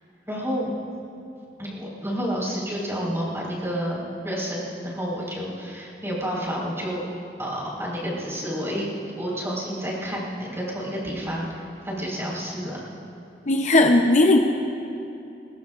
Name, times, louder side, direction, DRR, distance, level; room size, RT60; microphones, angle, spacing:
voice 1, 0.3-0.7 1.6-7.0 7.4-8.9 9.1-12.8, equal, 15° right, -5 dB, 4.5 m, -30 dB
voice 2, 13.5-14.4, left 2 dB, 40° left, 3 dB, 0.7 m, -17 dB
22.5 x 21.0 x 2.5 m, 2.8 s
head